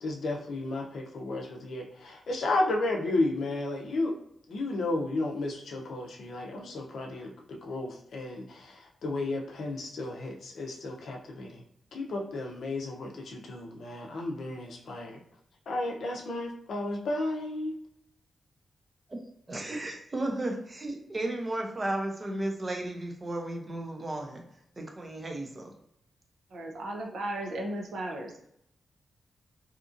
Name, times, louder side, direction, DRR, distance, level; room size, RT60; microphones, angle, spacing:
voice 1, 0.0-4.2 4.5-11.6 11.9-15.2 15.7-17.8, left 2 dB, 75° left, 0 dB, 0.5 m, -33 dB
voice 2, 19.5-24.4 24.8-25.7, right 1 dB, 25° right, 2 dB, 0.5 m, -34 dB
voice 3, 26.5-28.4, right 1 dB, 75° right, 1 dB, 0.6 m, -35 dB
2.8 x 2.4 x 2.5 m, 0.74 s
wide cardioid pair, 135°, 0 cm